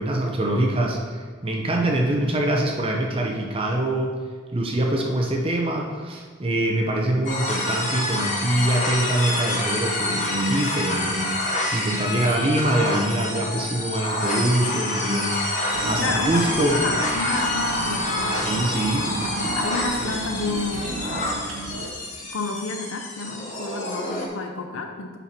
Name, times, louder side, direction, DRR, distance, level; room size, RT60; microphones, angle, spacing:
voice 1, 0.0-4.1 4.5-11.3 11.7-15.5 15.8-16.8 18.4-19.2, right 1 dB, 25° right, 0 dB, 0.8 m, -24 dB
sound 1, 7.2-24.3, left 1 dB, 35° left, 1.1 m, -27 dB
sound 2, 15.7-21.9, right 2 dB, 75° right, 0.8 m, -33 dB
voice 2, 16.0-18.5 19.6-21.2 22.2-25.2, left 3 dB, 90° left, 4 dB, 0.7 m, -30 dB
7.1 x 5.7 x 4.4 m, 1.5 s
head